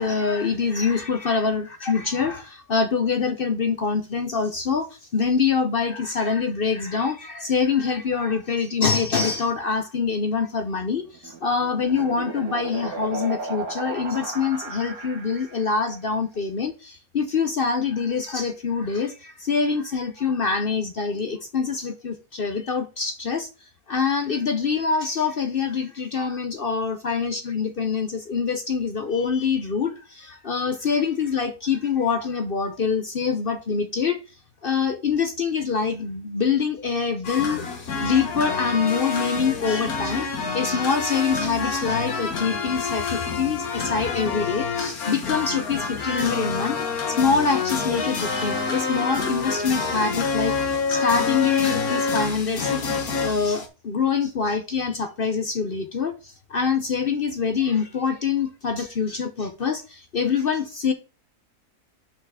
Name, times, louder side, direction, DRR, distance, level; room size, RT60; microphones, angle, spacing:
voice 1, 0.0-23.5 23.9-34.2 34.6-46.8 47.1-60.9, left 5 dB, 50° left, 0.7 m, -25 dB
sound 1, 11.0-15.8, right 4 dB, 70° right, 1.7 m, -35 dB
sound 2, 37.2-53.7, left 4 dB, 70° left, 1.7 m, -27 dB
5.8 x 5.7 x 4.7 m
omnidirectional pair, 1.6 m